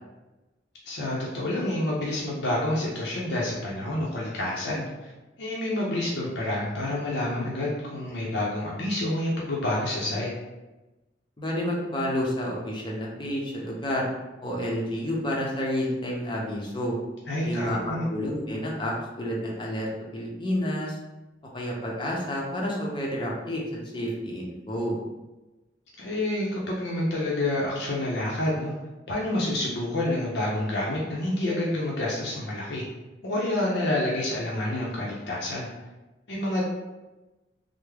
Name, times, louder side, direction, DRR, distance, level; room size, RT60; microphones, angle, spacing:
voice 1, 0.9-5.1 5.4-10.3 17.3-18.0 26.0-28.7 29.1-32.8 33.2-35.7 36.3-36.7, left 1 dB, 70° left, -5 dB, 0.6 m, -28 dB
voice 2, 11.4-14.1 14.4-17.0 17.4-21.0 21.5-25.0, equal, 25° left, -3 dB, 0.6 m, -30 dB
3.4 x 2.0 x 3.3 m, 1.1 s
head